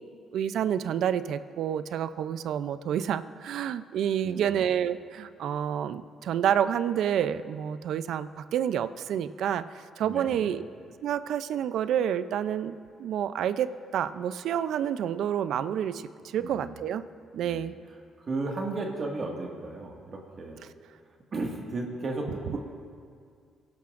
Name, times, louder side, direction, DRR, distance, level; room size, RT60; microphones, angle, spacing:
voice 1, 0.3-10.6 11.0-17.0 17.3-17.7, right 9 dB, 75° right, 13 dB, 0.4 m, -29 dB
voice 2, 4.2-4.7 10.0-10.5 16.4-16.8 17.3-17.7 18.2-20.6 21.3-22.6, right 2 dB, 45° right, 0 dB, 1.8 m, -34 dB
29.0 x 11.5 x 2.5 m, 2.2 s
cardioid pair, 90°, 0 cm